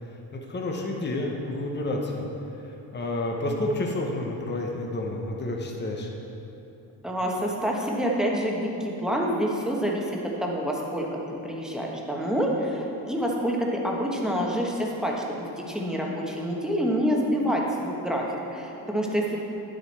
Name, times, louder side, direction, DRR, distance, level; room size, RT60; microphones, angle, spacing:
voice 1, 0.3-2.3 2.6-6.1, left 2 dB, 25° left, 0 dB, 1.0 m, -30 dB
voice 2, 7.0-19.4, equal, ahead, -2 dB, 1.3 m, -27 dB
10.5 x 7.8 x 4.3 m, 2.9 s
cardioid pair, 115°, 43 cm